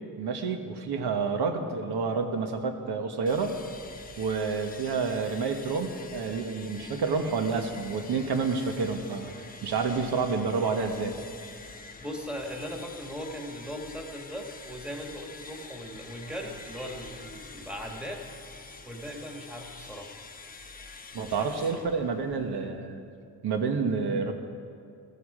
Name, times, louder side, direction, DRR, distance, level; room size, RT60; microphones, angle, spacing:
voice 1, 0.2-3.5 4.2-11.1 21.1-23.0 23.4-24.3, right 4 dB, 75° right, 5 dB, 1.4 m, -29 dB
sound 1, 3.3-22.7, left 4 dB, 20° left, 0.8 m, -47 dB
voice 2, 12.0-18.2 18.8-20.1 21.2-21.8, equal, 5° right, 1 dB, 1.6 m, -39 dB
15.0 x 14.5 x 5.0 m, 2.4 s
wide cardioid pair, 140°, 39 cm